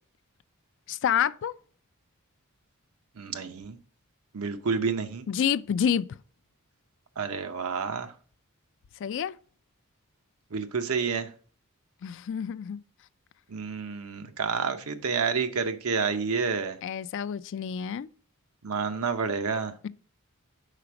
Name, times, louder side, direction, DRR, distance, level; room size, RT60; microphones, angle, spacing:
voice 1, 0.9-1.5 5.3-6.2 9.0-9.4 12.0-12.8 16.8-18.1, left 8 dB, 55° left, 0.3 m, -28 dB
voice 2, 3.2-3.8 4.3-5.3 7.2-8.1 10.5-11.3 13.5-16.8 18.6-19.7, right 5 dB, 75° right, 0.7 m, -29 dB
5.0 x 4.2 x 5.8 m
head